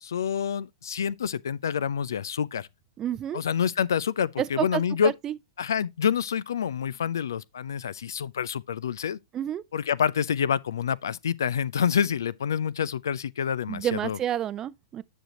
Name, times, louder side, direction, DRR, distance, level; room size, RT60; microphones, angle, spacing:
voice 1, 0.0-2.7 3.3-5.1 5.6-9.2 9.7-14.2, left 7 dB, 65° left, 0.4 m, -27 dB
voice 2, 3.0-3.4 4.4-5.3 9.3-9.6 13.7-15.0, right 10 dB, 25° right, 0.6 m, -29 dB
10.0 x 6.3 x 2.9 m
figure-of-eight pair, 100°, 2 cm